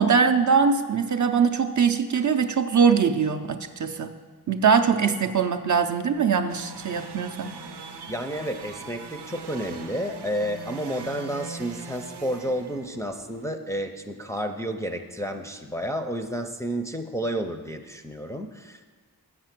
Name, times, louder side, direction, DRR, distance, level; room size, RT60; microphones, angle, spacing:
voice 1, 0.0-4.1 4.5-7.6, right 6 dB, 50° right, 7 dB, 0.5 m, -22 dB
sound 1, 6.5-13.5, right 5 dB, 85° right, 0.7 m, -41 dB
voice 2, 8.1-18.9, equal, 10° left, 4 dB, 0.4 m, -31 dB
7.5 x 6.6 x 5.9 m, 1.4 s
wide cardioid pair, 95°, 40 cm